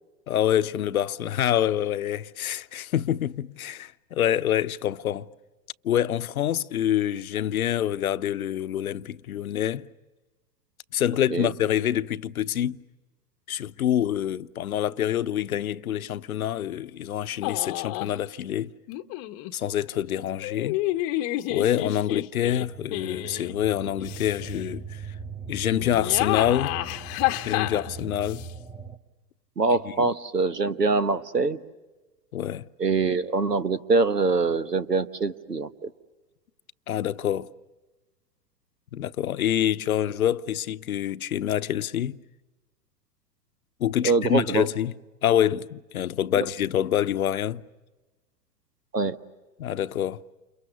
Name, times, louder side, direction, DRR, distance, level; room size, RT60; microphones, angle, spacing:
voice 1, 0.3-5.3 5.8-9.9 10.9-12.8 13.5-18.7 19.5-20.8 21.5-25.1 25.5-26.8 27.4-28.4 30.0-30.1 32.3-32.7 36.9-37.5 38.9-42.2 43.8-44.9 45.2-47.6 49.6-50.2, left 11 dB, 65° left, 0.8 m, -26 dB
sound 1, 17.4-18.2 18.9-19.5 20.4-23.5 24.0-24.6 25.8-28.5, left 17 dB, 30° left, 0.9 m, -30 dB
sound 2, 22.4-29.0, right 5 dB, 5° right, 0.9 m, -40 dB
voice 2, 29.6-31.6 32.8-35.9 44.0-44.7 46.3-46.4 48.9-49.2, right 3 dB, 85° right, 1.3 m, -24 dB
29.5 x 29.5 x 6.7 m
figure-of-eight pair, 100°, 47 cm